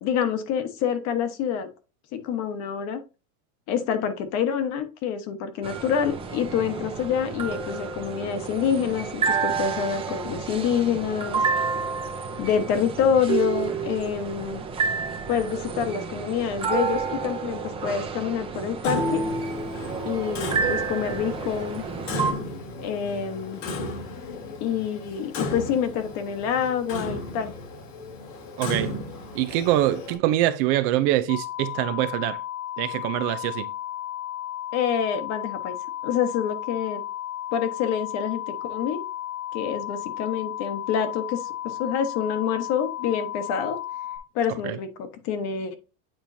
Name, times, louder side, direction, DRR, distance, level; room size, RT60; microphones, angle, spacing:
voice 1, 0.0-1.7 2.1-3.0 3.7-11.4 12.4-14.6 15.3-19.2 20.0-21.8 22.8-23.6 24.6-27.5 34.7-35.8 36.0-37.0 37.5-39.0 39.5-43.8 44.3-45.8, left 8 dB, 45° left, 1.2 m, -27 dB
sound 1, 5.6-22.3, right 5 dB, 15° right, 0.7 m, -30 dB
Clock, 18.8-30.2, left 2 dB, 90° left, 2.7 m, -35 dB
voice 2, 28.6-28.9 29.3-32.4 32.8-33.7 44.6-44.8, right 14 dB, 45° right, 0.5 m, -24 dB
sound 2, 31.3-44.2, left 12 dB, 65° left, 1.1 m, -34 dB
8.9 x 4.5 x 2.7 m
supercardioid pair, 165°, 37 cm